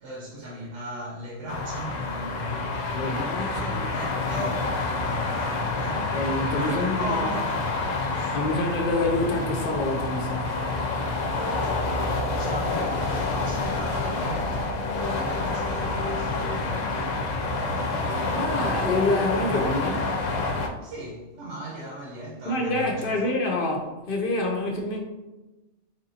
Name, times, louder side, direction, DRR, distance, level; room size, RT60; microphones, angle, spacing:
voice 1, 0.0-3.2 3.5-6.1 6.6-8.6 11.6-14.5 14.9-17.2 20.8-23.3, equal, 75° right, 1.0 m, -38 dB
sound 1, 1.5-20.7, left 3 dB, 90° left, 0.9 m, -28 dB
voice 2, 2.9-3.9 6.1-7.4 8.3-10.6 18.1-20.1 22.4-25.0, left 2 dB, 60° left, 0.6 m, -27 dB
3.8 x 3.4 x 2.7 m
omnidirectional pair, 1.2 m